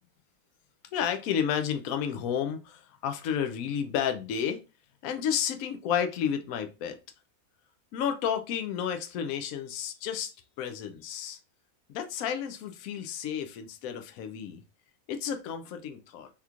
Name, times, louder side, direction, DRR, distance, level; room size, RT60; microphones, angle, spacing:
voice 1, 0.9-4.6 5.0-6.9 7.9-10.3 10.6-11.4 11.9-14.6 15.1-16.3, left 8 dB, 75° left, 1.0 m, -31 dB
3.5 x 2.9 x 2.4 m
omnidirectional pair, 1.5 m